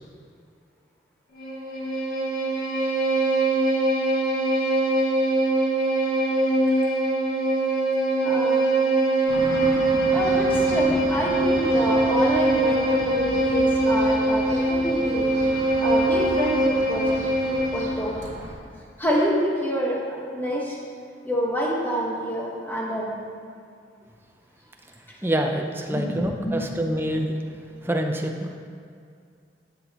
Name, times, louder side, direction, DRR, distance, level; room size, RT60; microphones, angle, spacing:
Bowed string instrument, 1.4-18.0, right 2 dB, 50° left, 1.9 m, -22 dB
voice 1, 8.2-8.6 10.1-15.3 15.8-17.2 17.5-18.2 19.0-20.8 21.2-23.1 25.9-26.6, equal, 10° left, -4 dB, 1.4 m, -27 dB
sound 1, 9.3-18.5, right 1 dB, 40° right, 1.1 m, -36 dB
voice 2, 25.2-27.3 27.8-28.5, right 1 dB, 15° right, 3 dB, 0.6 m, -26 dB
11.5 x 7.2 x 3.0 m, 2.3 s
head